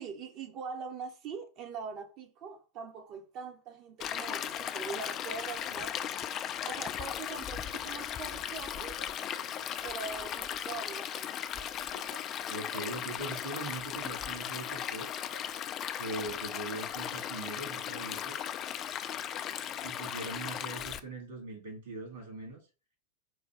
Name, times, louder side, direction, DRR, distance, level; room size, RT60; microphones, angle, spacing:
voice 1, 0.0-6.0 6.7-9.0 9.8-11.4 19.3-19.6, right 5 dB, 40° right, 0.8 m, -42 dB
Stream, 4.0-21.0, left 10 dB, 30° left, 0.4 m, -37 dB
sound 1, 8.8-9.7 11.6-12.5 14.6-15.7, right 1 dB, 80° right, 1.4 m, -54 dB
voice 2, 12.5-15.1 16.0-18.4 19.8-22.6, right 2 dB, 60° right, 2.3 m, -41 dB
4.8 x 2.3 x 3.8 m
figure-of-eight pair, 90°, 0 cm